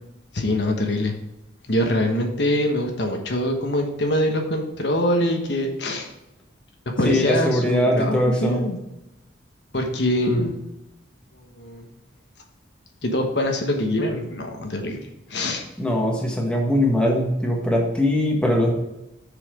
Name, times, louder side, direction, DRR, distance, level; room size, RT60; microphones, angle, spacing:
voice 1, 0.3-1.2 1.7-6.1 6.9-8.8 9.7-10.6 11.6-11.9 13.0-15.0 15.3-15.6, left 1 dB, 60° left, 3 dB, 1.2 m, -23 dB
voice 2, 7.0-8.6 15.8-18.7, left 1 dB, 5° left, -1 dB, 1.4 m, -21 dB
7.0 x 5.7 x 5.0 m, 0.93 s
head